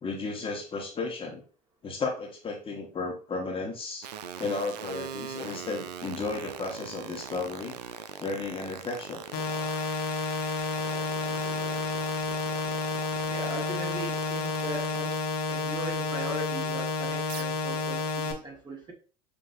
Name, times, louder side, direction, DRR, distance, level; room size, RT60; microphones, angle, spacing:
voice 1, 0.0-1.4 1.8-4.1 4.4-7.7 8.2-9.2, left 3 dB, 25° left, 1.1 m, -34 dB
sound 1, 4.0-15.3 17.3-17.4, right 9 dB, 80° right, 0.4 m, -40 dB
sound 2, 9.3-18.3, left 4 dB, 50° left, 0.9 m, -30 dB
voice 2, 13.3-15.2 15.5-18.9, right 1 dB, 20° right, 1.5 m, -38 dB
5.8 x 2.6 x 2.6 m
hypercardioid pair, 80°, 21 cm